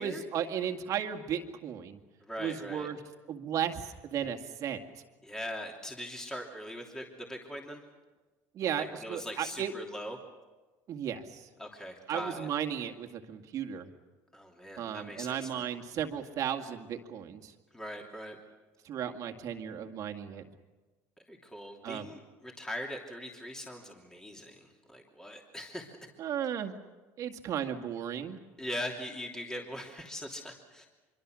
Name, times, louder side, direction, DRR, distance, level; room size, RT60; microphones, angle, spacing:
voice 1, 0.0-2.0 2.4-3.0 3.3-4.8 8.6-9.7 10.9-11.5 12.1-13.9 14.8-17.5 18.8-20.4 21.8-22.1 26.2-26.7 27.2-28.4, right 9 dB, 50° right, 5 dB, 2.1 m, -35 dB
voice 2, 2.2-2.9 5.2-7.8 8.8-10.2 11.6-12.5 14.3-15.7 17.7-18.4 21.3-26.1 28.6-30.9, equal, 10° left, 0 dB, 3.0 m, -41 dB
25.5 x 23.5 x 6.4 m, 1.2 s
supercardioid pair, 115°, 8 cm